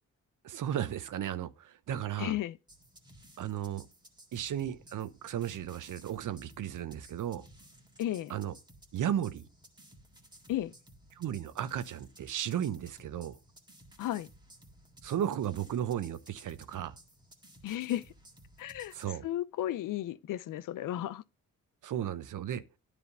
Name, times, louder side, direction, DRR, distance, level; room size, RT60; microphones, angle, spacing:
voice 1, 0.4-2.3 3.4-3.9 4.3-7.4 8.3-8.5 8.9-9.5 11.2-13.4 15.0-16.9 18.9-19.2 21.8-22.6, right 10 dB, 65° right, 0.8 m, -34 dB
voice 2, 2.2-2.6 8.0-8.3 10.5-10.7 14.0-14.3 17.6-18.1 18.6-18.9 19.2-21.2, left 13 dB, 70° left, 0.5 m, -34 dB
sound 1, 2.7-19.1, right 1 dB, 15° right, 1.8 m, -57 dB
9.8 x 3.5 x 6.6 m
cardioid pair, 75°, 34 cm